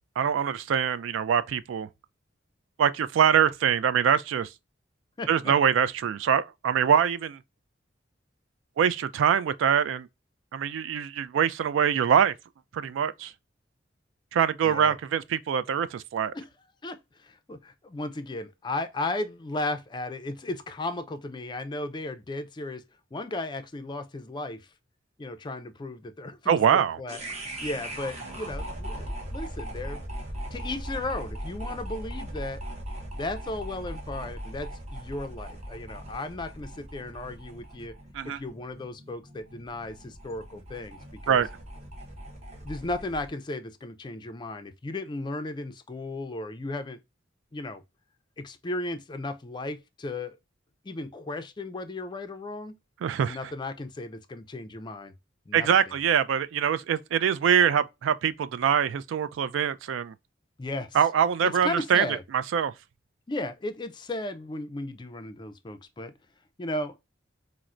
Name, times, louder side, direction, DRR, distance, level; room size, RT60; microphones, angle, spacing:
voice 1, 0.2-1.9 2.8-4.5 5.3-7.4 8.8-10.1 10.5-12.3 12.7-13.3 14.3-16.3 26.5-27.0 38.1-38.4 41.3-41.5 53.0-53.4 55.5-60.1 60.9-62.1 62.3-62.7, right 8 dB, 80° right, 0.3 m, -24 dB
voice 2, 5.2-5.5 14.6-14.9 16.3-16.5 16.8-22.8 23.1-24.7 25.2-27.2 27.6-30.1 30.5-32.6 33.1-37.9 38.2-41.4 42.6-47.0 47.5-47.8 48.4-50.4 50.8-52.8 53.3-55.1 55.5-56.0 60.6-61.0 61.4-62.2 63.3-66.1 66.6-67.0, left 2 dB, 25° left, 0.4 m, -35 dB
sound 1, 27.1-43.3, right 1 dB, 35° right, 0.8 m, -39 dB
4.3 x 2.0 x 2.4 m
head